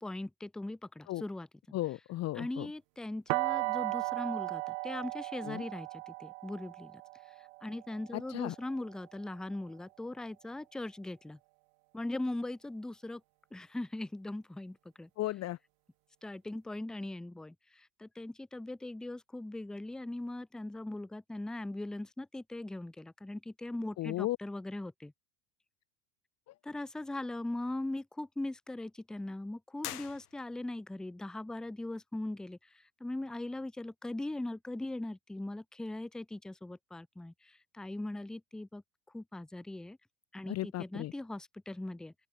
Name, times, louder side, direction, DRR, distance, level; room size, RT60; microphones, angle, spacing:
voice 1, 0.0-1.8 2.4-7.0 7.3-11.4 11.9-13.2 13.5-15.1 16.2-25.1 26.6-38.8 39.1-40.0 40.3-42.1, left 2 dB, ahead, 0.5 m, -40 dB
voice 2, 1.7-2.7 5.4-5.6 8.1-8.5 15.2-15.6 24.0-24.4 26.5-26.6 40.5-41.1, left 15 dB, 35° left, 1.1 m, -35 dB
sound 1, 3.3-9.1, right 31 dB, 60° right, 0.5 m, -37 dB
sound 2, 29.8-30.8, left 13 dB, 90° left, 2.9 m, -44 dB
open air
supercardioid pair, 115°, 44 cm